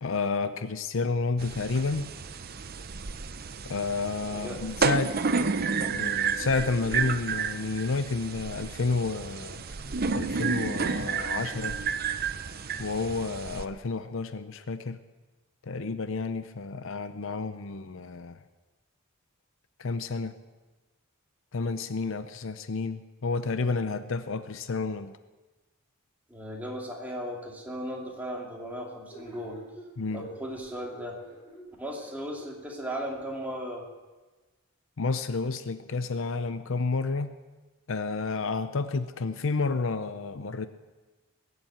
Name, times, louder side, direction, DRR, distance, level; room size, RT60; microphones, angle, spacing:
voice 1, 0.0-2.1 3.6-5.5 5.8-9.8 10.1-11.8 12.8-15.0 15.6-18.4 19.8-20.3 21.5-25.1 30.0-30.3 35.0-37.3 37.9-40.7, left 4 dB, 60° left, 11 dB, 0.6 m, -30 dB
sound 1, 1.4-13.7, right 5 dB, 45° right, 0.7 m, -31 dB
voice 2, 26.3-29.6 30.1-31.2 31.8-33.9, equal, 10° right, -2 dB, 2.6 m, -36 dB
sound 2, 29.1-33.3, right 1 dB, 15° left, 7.2 m, -48 dB
20.5 x 7.9 x 8.7 m, 1.2 s
head